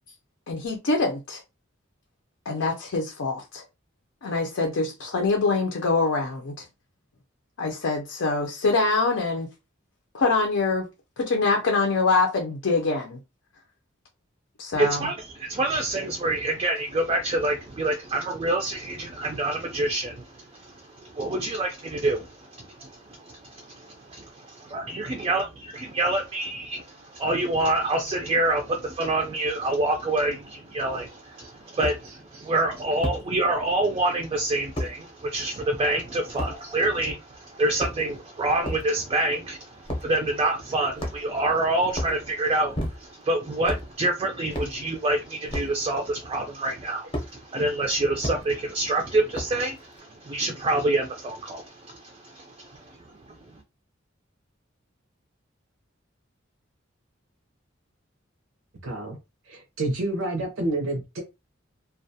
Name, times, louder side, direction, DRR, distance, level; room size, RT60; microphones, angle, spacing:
voice 1, 0.5-1.4 2.5-3.6 4.2-6.5 7.6-9.5 10.1-10.9 11.2-13.2 14.6-15.1, left 3 dB, 85° left, 0.6 m, -24 dB
voice 2, 14.7-52.9, right 2 dB, 30° right, 0.3 m, -27 dB
sound 1, 30.8-30.9 31.8-32.0 33.0-33.2 34.7-34.9 36.4-36.5 37.6-38.2 38.6-38.9 39.8-40.1 41.0-41.4 41.9-42.2 42.7-43.2 43.6-43.9 44.5-44.8 45.5-45.7 47.1-47.3 48.2-48.4 49.3-49.6, equal, 30° left, 0.7 m, -31 dB
voice 3, 58.8-59.2 59.5-61.2, right 2 dB, 85° right, 0.6 m, -29 dB
2.3 x 2.2 x 2.7 m
head